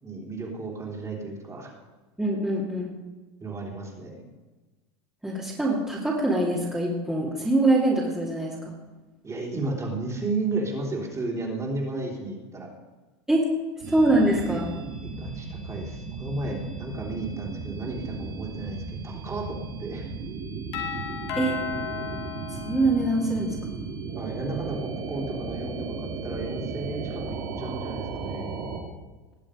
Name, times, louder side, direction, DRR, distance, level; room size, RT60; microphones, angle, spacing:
voice 1, 0.0-1.7 3.4-4.3 9.2-12.7 15.2-20.1 24.2-28.5, right 2 dB, 20° right, -1 dB, 3.4 m, -33 dB
voice 2, 2.2-3.0 5.2-8.7 13.3-13.5 13.9-14.7 21.4-21.6 22.5-23.5, right 2 dB, 5° right, -6 dB, 2.7 m, -24 dB
sound 1, 13.8-28.8, right 4 dB, 60° right, 3.5 m, -35 dB
Doorbell, 20.7-23.5, left 8 dB, 75° left, 2.5 m, -35 dB
20.0 x 7.6 x 5.1 m, 1.3 s
supercardioid pair, 110°, 15 cm